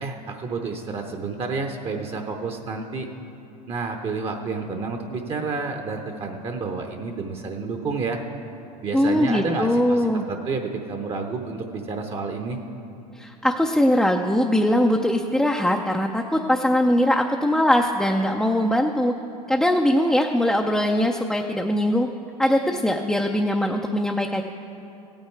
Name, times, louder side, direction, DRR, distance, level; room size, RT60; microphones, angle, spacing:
voice 1, 0.0-3.1 3.7-8.2 8.8-12.6, right 4 dB, 25° right, 4 dB, 0.8 m, -30 dB
voice 2, 8.9-10.2 13.2-19.1 19.5-22.1 22.4-24.4, left 1 dB, ahead, 1 dB, 0.5 m, -21 dB
15.5 x 8.8 x 4.5 m, 2.8 s
hypercardioid pair, 100°, 21 cm